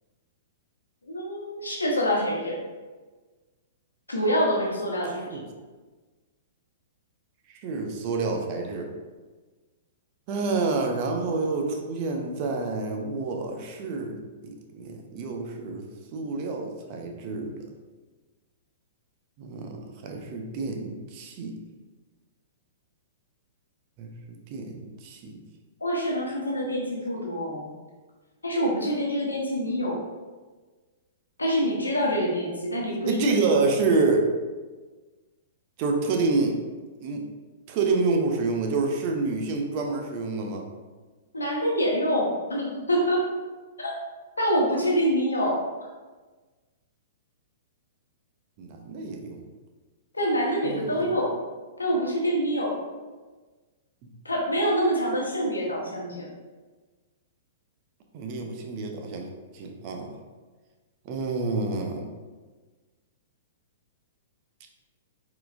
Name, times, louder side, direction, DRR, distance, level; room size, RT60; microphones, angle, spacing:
voice 1, 1.1-2.6 4.1-5.4 25.8-27.7 28.4-30.0 31.4-33.5 41.3-43.2 43.8-43.9 44.4-45.6 50.1-51.3 51.8-52.8 54.2-56.3, equal, 85° left, -2 dB, 1.1 m, -26 dB
voice 2, 7.5-8.9 10.3-15.9 16.1-17.5 19.4-21.6 24.0-24.1 24.5-25.4 33.0-34.3 35.8-36.6 37.0-37.3 37.7-40.7 48.6-49.4 50.6-51.1 58.1-59.3 59.5-60.1 61.0-62.1, right 3 dB, 40° right, 3 dB, 0.7 m, -28 dB
4.4 x 3.9 x 2.6 m, 1.3 s
figure-of-eight pair, 110°, 0 cm